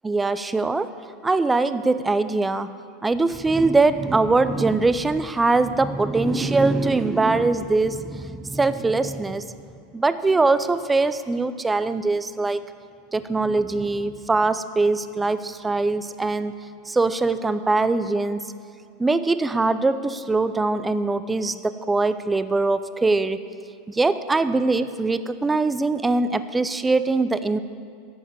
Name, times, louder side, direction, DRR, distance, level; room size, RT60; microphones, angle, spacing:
voice 1, 0.0-0.9 1.2-2.7 3.0-9.5 9.9-12.6 13.1-16.5 16.9-18.4 19.0-23.4 23.9-27.6, right 3 dB, 15° right, 13 dB, 0.5 m, -22 dB
9.5 x 7.1 x 8.5 m, 2.2 s
hypercardioid pair, 95°, 0 cm